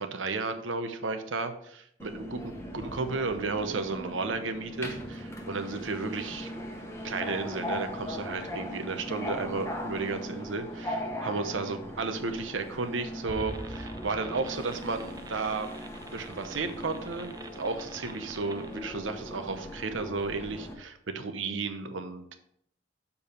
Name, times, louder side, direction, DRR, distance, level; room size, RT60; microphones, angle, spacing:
voice 1, 0.0-6.5 7.0-15.7 16.1-22.3, right 3 dB, 90° right, 8 dB, 0.9 m, -33 dB
Subway metro underground, 2.0-20.7, equal, 15° left, 1.0 m, -39 dB
sound 1, 13.3-18.8, right 2 dB, 20° right, 0.5 m, -44 dB
7.1 x 4.7 x 5.3 m, 0.71 s
head